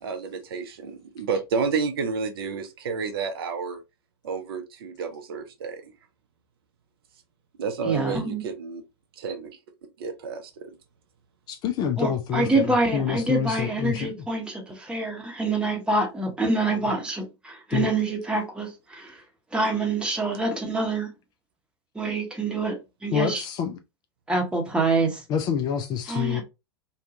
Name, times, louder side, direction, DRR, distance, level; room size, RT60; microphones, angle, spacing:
voice 1, 0.0-3.8 4.2-5.9 7.6-8.8 9.2-9.6 10.0-10.8 23.1-23.2, right 5 dB, 60° right, 0.5 m, -30 dB
voice 2, 7.9-8.4 12.0-19.1 19.5-21.1 21.9-23.4 24.3-25.2 26.1-26.4, right 2 dB, 5° right, 0.9 m, -26 dB
voice 3, 11.5-14.1 17.7-17.9 23.1-23.8 25.3-26.4, left 8 dB, 30° left, 0.4 m, -27 dB
2.7 x 2.2 x 2.6 m
figure-of-eight pair, 95°, 14 cm